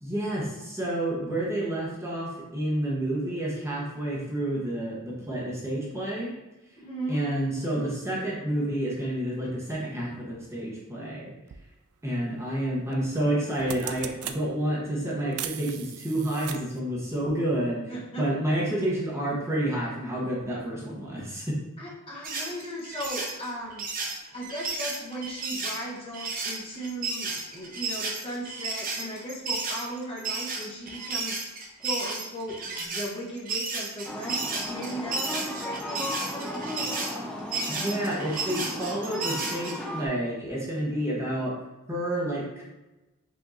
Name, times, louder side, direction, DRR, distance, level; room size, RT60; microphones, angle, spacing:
voice 1, 0.0-6.3 7.1-11.3 12.0-21.5 37.7-41.5 41.9-42.6, right 1 dB, 15° right, -5 dB, 0.9 m, -29 dB
voice 2, 6.8-7.2 17.9-18.3 21.8-23.8 24.3-31.4 31.8-37.2, equal, 25° left, -5 dB, 1.0 m, -37 dB
sound 1, 11.5-11.6 12.9-13.1 13.4-14.4 15.3-16.8, right 10 dB, 75° right, 0.3 m, -37 dB
sound 2, 22.2-39.7, right 3 dB, 40° right, 0.8 m, -33 dB
sound 3, 34.0-40.1, left 1 dB, 5° left, 0.5 m, -36 dB
4.9 x 2.7 x 3.8 m, 1.0 s
head